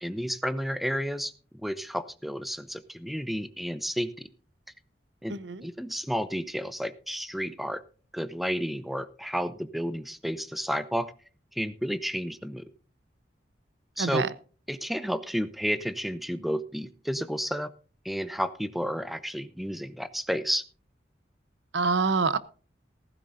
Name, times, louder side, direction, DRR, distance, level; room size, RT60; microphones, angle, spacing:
voice 1, 0.0-4.3 5.2-5.4 5.6-7.8 8.1-11.1 11.5-12.6 14.0-14.3 14.7-17.7 18.0-20.6, equal, ahead, 14 dB, 0.6 m, -31 dB
voice 2, 5.3-5.7 14.0-14.3 21.7-22.4, right 4 dB, 90° right, 16 dB, 0.8 m, -26 dB
16.0 x 14.5 x 2.6 m, 0.38 s
head